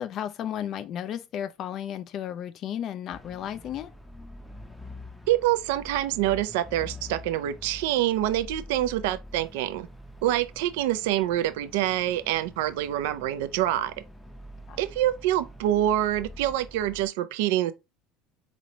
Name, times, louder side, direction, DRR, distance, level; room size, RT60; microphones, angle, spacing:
voice 1, 0.0-3.9 14.7-14.8, left 10 dB, 45° left, 0.3 m, -34 dB
sound 1, 3.1-17.1, left 1 dB, 5° left, 0.6 m, -45 dB
voice 2, 5.3-9.9 10.2-13.9 14.8-17.7, right 13 dB, 80° right, 0.4 m, -26 dB
4.0 x 3.0 x 2.7 m
supercardioid pair, 115°, 0 cm